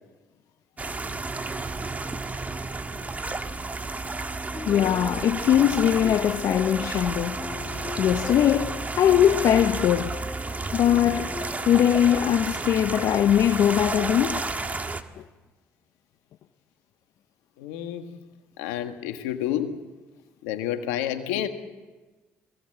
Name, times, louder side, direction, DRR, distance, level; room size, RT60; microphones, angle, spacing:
sound 1, 0.8-15.0, right 3 dB, 25° right, 1.8 m, -32 dB
sound 2, 4.5-14.7, left 4 dB, 30° left, 1.6 m, -40 dB
voice 1, 4.7-7.5 8.0-10.2 10.7-11.4 11.6-14.4, left 10 dB, 65° left, 0.8 m, -21 dB
voice 2, 17.6-18.1 18.6-19.8 20.4-21.5, left 11 dB, 90° left, 1.6 m, -29 dB
22.5 x 17.0 x 7.9 m
supercardioid pair, 65°, 6 cm